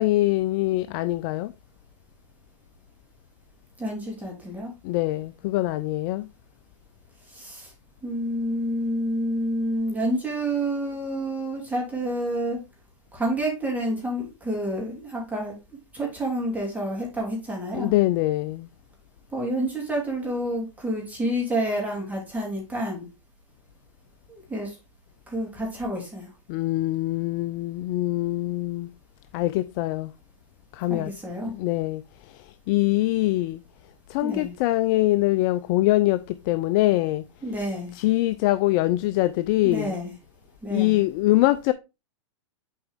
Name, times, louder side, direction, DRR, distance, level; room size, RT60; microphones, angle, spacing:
voice 1, 0.0-1.5 4.8-6.3 17.7-18.7 26.5-28.9 29.3-30.1 30.7-31.1 31.5-33.6 34.1-37.2 37.9-40.0 40.7-41.7, left 17 dB, 45° left, 0.4 m, -23 dB
voice 2, 3.8-4.7 7.3-7.7 8.0-12.6 13.1-15.6 15.9-17.9 19.3-23.1 24.3-24.8 25.3-26.3 30.9-31.5 34.2-34.5 37.4-37.9 39.6-40.1 40.6-41.0, right 1 dB, 10° right, 2.9 m, -29 dB
7.6 x 4.5 x 3.5 m
hypercardioid pair, 120°, 16 cm